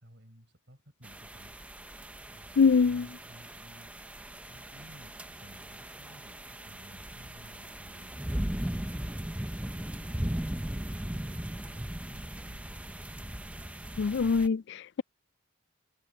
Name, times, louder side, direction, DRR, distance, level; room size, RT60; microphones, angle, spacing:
voice 1, 0.0-1.6 2.3-4.0 4.5-8.8 9.7-12.6, equal, 50° right, 7.1 m, -55 dB
sound 1, 1.0-14.5, right 1 dB, 5° right, 0.6 m, -38 dB
voice 2, 2.6-3.0 14.0-15.0, left 5 dB, 50° left, 0.3 m, -24 dB
head